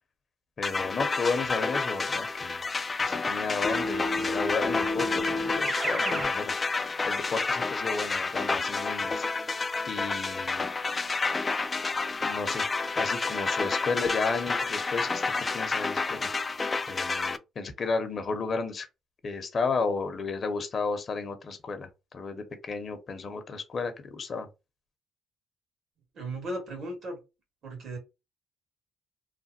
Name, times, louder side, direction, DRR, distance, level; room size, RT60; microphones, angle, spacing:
voice 1, 0.6-2.6 3.0-6.6 7.0-9.3 9.9-10.7 12.2-12.6 13.0-16.3 16.9-18.9 19.2-24.5, left 4 dB, 45° left, 0.8 m, -33 dB
sound 1, 0.6-17.4, left 4 dB, 30° left, 0.3 m, -30 dB
Keyboard (musical), 3.6-6.4, left 1 dB, 35° right, 1.0 m, -31 dB
voice 2, 26.1-27.2 27.6-28.0, right 1 dB, 65° right, 1.8 m, -36 dB
3.2 x 2.2 x 2.6 m
cardioid pair, 90°, 0 cm